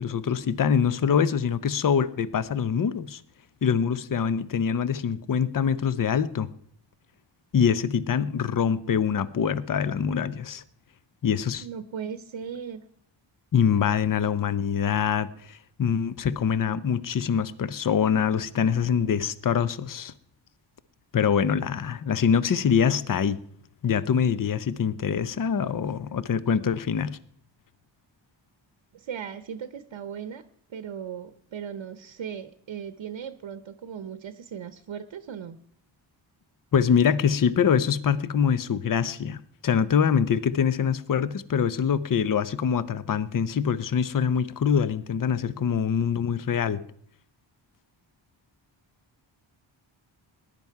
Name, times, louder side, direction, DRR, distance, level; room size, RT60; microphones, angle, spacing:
voice 1, 0.0-3.2 3.6-6.5 7.5-10.6 11.2-11.6 13.5-20.1 21.1-23.4 23.8-27.2 36.7-46.8, left 7 dB, 45° left, 15 dB, 0.7 m, -24 dB
voice 2, 11.6-12.8 28.9-30.4 30.7-35.6, right 7 dB, 70° right, 11 dB, 0.9 m, -37 dB
20.0 x 10.5 x 4.6 m, 0.64 s
wide cardioid pair, 115°, 48 cm